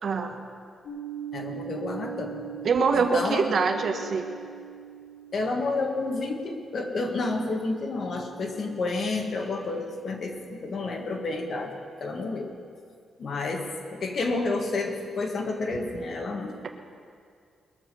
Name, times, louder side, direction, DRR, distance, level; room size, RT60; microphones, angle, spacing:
voice 1, 0.0-0.3 2.6-4.3, right 5 dB, 50° right, 5 dB, 1.1 m, -24 dB
sound 1, 0.8-8.7, right 9 dB, 80° left, 4.2 m, -42 dB
voice 2, 1.3-2.4 2.9-3.4 5.3-11.7 12.0-12.5 13.2-13.6 13.9-16.5, left 3 dB, 45° left, 2 dB, 1.7 m, -30 dB
21.0 x 7.3 x 6.8 m, 2.2 s
wide cardioid pair, 145°, 0 cm